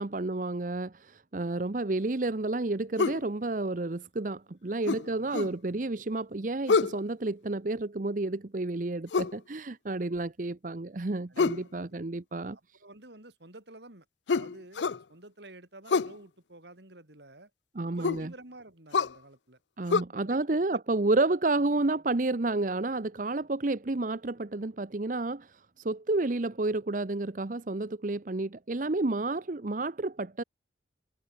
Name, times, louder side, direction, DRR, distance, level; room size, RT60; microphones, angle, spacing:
voice 1, 0.0-12.6 17.7-18.3 19.8-30.4, right 2 dB, 45° right, 0.8 m, -30 dB
sound 1, 3.0-3.2 4.9-5.6 6.7-7.0 9.1-9.4 11.4-11.7 14.3-15.0 15.9-16.2 18.0-18.3 18.9-19.2 19.9-20.0, left 4 dB, 75° left, 0.5 m, -27 dB
voice 2, 5.0-5.5 11.3-11.5 11.8-11.9 12.4-17.5 17.8-19.6 20.2-20.5 20.7-20.8, right 2 dB, 70° right, 3.7 m, -51 dB
head